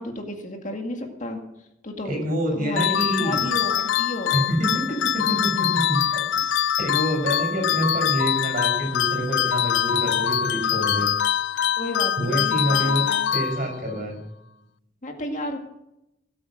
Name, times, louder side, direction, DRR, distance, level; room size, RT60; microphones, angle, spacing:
voice 1, 0.0-2.2 2.5-4.3 10.3-10.6 11.8-13.3 15.0-15.6, left 1 dB, 40° left, 3 dB, 2.0 m, -33 dB
voice 2, 2.0-3.4 4.3-11.1 12.2-13.0 13.3-14.2, equal, 45° right, 1 dB, 6.8 m, -27 dB
sound 1, 2.8-14.0, left 9 dB, 70° left, 0.4 m, -24 dB
17.5 x 8.5 x 6.5 m, 0.85 s
head